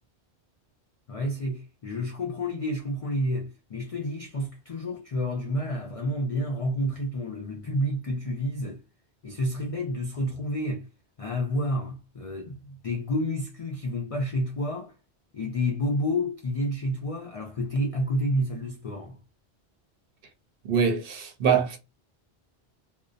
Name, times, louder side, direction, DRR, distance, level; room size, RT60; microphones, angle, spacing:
voice 1, 1.1-8.8 9.2-10.9 11.2-14.9 15.3-19.2, left 1 dB, 60° left, 0.3 m, -29 dB
voice 2, 20.6-21.8, right 6 dB, 60° right, 0.8 m, -24 dB
2.6 x 2.0 x 2.4 m
omnidirectional pair, 1.1 m